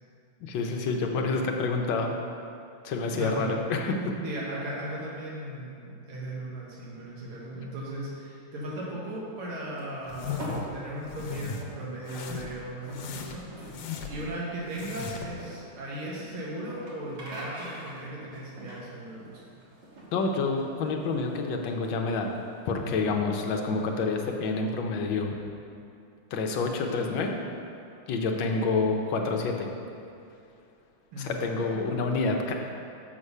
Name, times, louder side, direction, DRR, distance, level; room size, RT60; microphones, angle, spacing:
voice 1, 0.4-2.2 2.8-4.1 20.1-22.3 22.7-25.4 26.3-27.3 28.1-29.7 31.2-32.5, left 3 dB, 70° left, 2 dB, 1.4 m, -28 dB
voice 2, 3.1-3.5 4.2-13.8 14.0-19.4 27.9-28.0 31.1-31.8, right 1 dB, 85° right, -6 dB, 2.3 m, -37 dB
sound 1, 9.7-22.8, right 1 dB, 55° right, 2.1 m, -45 dB
sound 2, 10.1-10.7 11.1-11.6 12.1-12.6 12.9-14.3 14.7-15.4, left 6 dB, 85° left, 1.6 m, -37 dB
6.6 x 6.3 x 5.4 m, 2.6 s
omnidirectional pair, 2.4 m